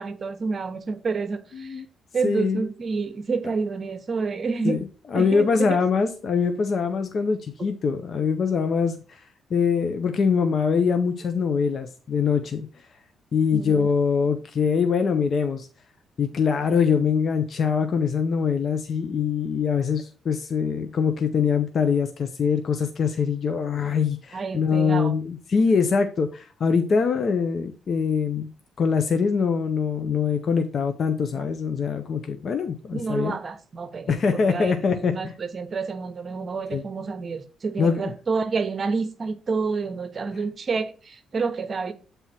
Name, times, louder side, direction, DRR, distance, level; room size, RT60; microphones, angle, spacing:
voice 1, 0.0-1.8 2.1-4.8 5.1-5.8 13.5-13.9 24.3-25.2 31.3-31.5 32.9-41.9, right 4 dB, 40° right, 0.9 m, -29 dB
voice 2, 1.5-1.8 2.2-2.7 4.6-4.8 5.1-9.2 9.5-12.7 13.3-15.7 16.2-28.5 28.8-33.3 34.1-35.3 36.7-36.8 37.8-38.0, left 6 dB, 50° left, 0.7 m, -23 dB
7.4 x 3.5 x 4.2 m
cardioid pair, 90°, 0 cm